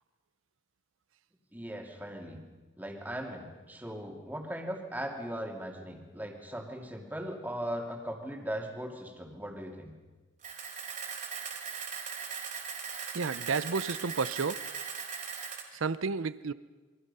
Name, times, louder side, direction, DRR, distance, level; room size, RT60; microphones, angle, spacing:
voice 1, 1.5-2.4 2.8-9.9, equal, 10° right, 2 dB, 2.6 m, -39 dB
Camera, 10.4-15.6, right 6 dB, 40° right, 3.3 m, -39 dB
voice 2, 13.1-14.6 15.7-16.5, right 4 dB, 90° right, 16 dB, 0.6 m, -31 dB
28.5 x 23.0 x 5.6 m, 1.3 s
head